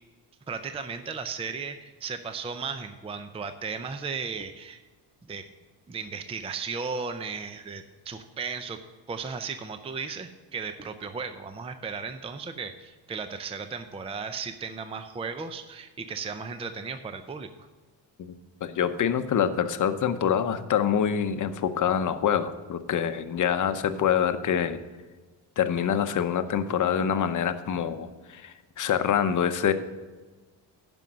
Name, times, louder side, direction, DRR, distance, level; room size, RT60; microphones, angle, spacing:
voice 1, 0.5-4.8 5.2-5.5 5.9-8.8 9.1-17.7, right 5 dB, 15° right, 9 dB, 0.5 m, -35 dB
voice 2, 18.2-24.8 25.6-29.7, left 8 dB, 45° left, 10 dB, 0.8 m, -26 dB
11.5 x 5.4 x 6.2 m, 1.3 s
cardioid pair, 125°, 41 cm